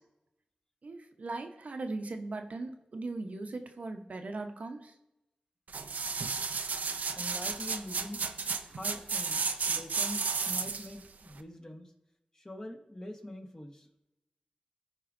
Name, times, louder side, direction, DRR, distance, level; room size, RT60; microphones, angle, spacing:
voice 1, 0.8-4.9, right 3 dB, 65° right, 5 dB, 0.9 m, -39 dB
sound 1, 5.7-10.9 11.4-11.5, right 5 dB, 80° right, 0.5 m, -33 dB
voice 2, 7.1-8.3 8.7-9.4 9.7-11.9 12.3-13.9, left 1 dB, 25° left, 3 dB, 1.4 m, -44 dB
14.5 x 4.9 x 2.6 m, 0.90 s
cardioid pair, 55°, 3 cm